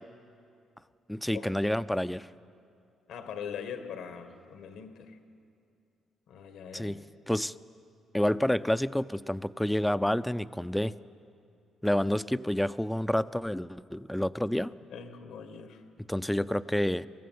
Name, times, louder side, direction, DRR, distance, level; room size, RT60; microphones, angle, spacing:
voice 1, 1.1-2.3 6.7-7.0 7.3-7.5 8.1-10.9 11.8-14.7 16.1-17.1, left 1 dB, 5° left, 15 dB, 0.5 m, -29 dB
voice 2, 3.1-5.2 6.3-7.0 14.9-15.8, left 7 dB, 85° left, 8 dB, 1.7 m, -42 dB
23.5 x 14.0 x 9.5 m, 2.5 s
cardioid pair, 90°, 0 cm